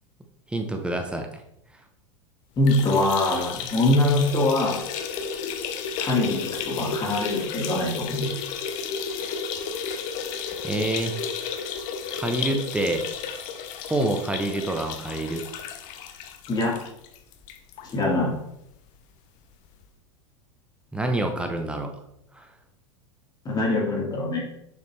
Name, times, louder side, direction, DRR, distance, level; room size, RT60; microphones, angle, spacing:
voice 1, 0.5-1.4 10.6-11.1 12.1-13.0 13.9-15.4 20.9-21.9 22.3-22.5, right 2 dB, 5° right, 4 dB, 0.9 m, -27 dB
sound 1, 2.6-18.0 18.3-18.4 18.7-18.8 19.8-19.9, left 6 dB, 50° left, 0.7 m, -33 dB
voice 2, 2.6-4.8 6.0-8.3 16.5-16.7 17.8-18.3 23.5-24.4, left 2 dB, 25° left, -3 dB, 1.9 m, -23 dB
7.0 x 4.2 x 3.3 m, 0.76 s
hypercardioid pair, 100°, 16 cm